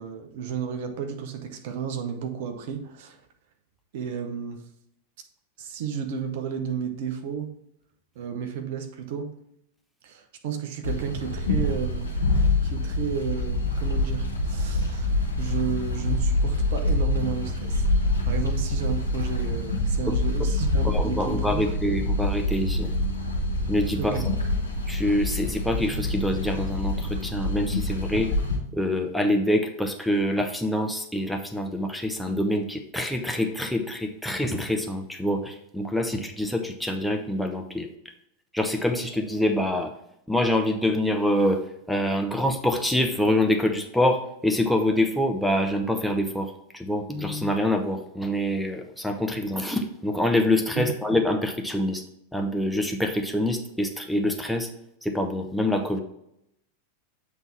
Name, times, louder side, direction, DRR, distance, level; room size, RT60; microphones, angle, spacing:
voice 1, 0.0-3.2 3.9-4.6 5.6-7.5 8.1-9.3 10.0-12.1 12.6-21.7 23.9-24.3 50.8-50.9, right 7 dB, 50° right, 6 dB, 0.9 m, -32 dB
sound 1, 10.8-28.6, left 2 dB, 85° left, 1.6 m, -26 dB
voice 2, 20.8-22.9 23.7-24.2 24.9-28.4 28.7-37.9 38.5-39.9 40.3-41.6 41.9-52.0 52.3-54.7 55.0-56.0, left 1 dB, ahead, 3 dB, 0.7 m, -25 dB
8.0 x 3.6 x 4.4 m, 0.75 s
figure-of-eight pair, 90°, 0 cm